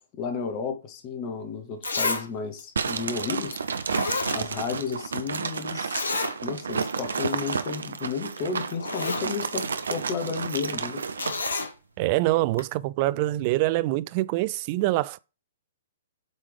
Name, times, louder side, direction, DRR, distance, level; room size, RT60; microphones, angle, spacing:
voice 1, 0.0-3.6 4.3-6.0 6.4-11.0, left 5 dB, 30° left, 1.2 m, -32 dB
Zipper (clothing), 1.3-1.4 1.8-2.3 2.6-2.7 3.5-3.6 3.9-4.9 5.1-5.2 5.9-6.4 6.8-6.9 7.2-7.4 8.3-8.4 8.7-9.3 11.2-11.7 12.6-12.7, left 3 dB, 70° left, 1.1 m, -29 dB
sound 1, 2.8-11.5, right 5 dB, 65° right, 0.7 m, -31 dB
voice 2, 12.0-15.2, right 18 dB, 35° right, 0.3 m, -25 dB
8.1 x 3.5 x 4.9 m
figure-of-eight pair, 115°, 0 cm